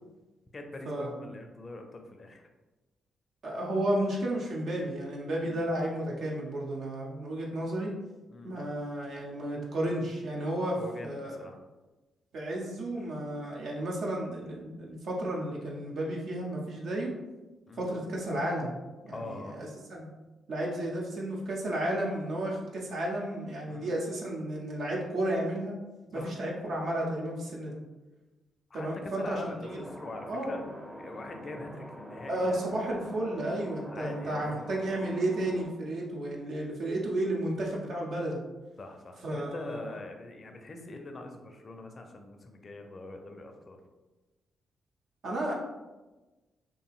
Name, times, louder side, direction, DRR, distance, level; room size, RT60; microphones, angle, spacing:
voice 1, 0.5-2.5 5.4-5.7 8.3-8.6 10.8-11.6 17.7-17.9 19.1-19.6 23.7-23.9 26.1-26.3 28.7-30.6 31.0-32.6 33.9-34.6 38.8-43.8, left 2 dB, 45° left, 4 dB, 0.4 m, -43 dB
voice 2, 3.4-7.9 8.4-11.5 12.3-17.1 17.8-18.7 19.0-20.1 20.5-25.8 26.1-27.8 28.7-29.5 30.3-30.6 32.3-38.4 39.2-39.9 45.2-45.5, right 1 dB, 65° right, -2 dB, 0.6 m, -32 dB
sound 1, 29.6-35.7, equal, 20° right, 0.6 m, -45 dB
2.7 x 2.7 x 2.3 m, 1.1 s
hypercardioid pair, 40°, 0 cm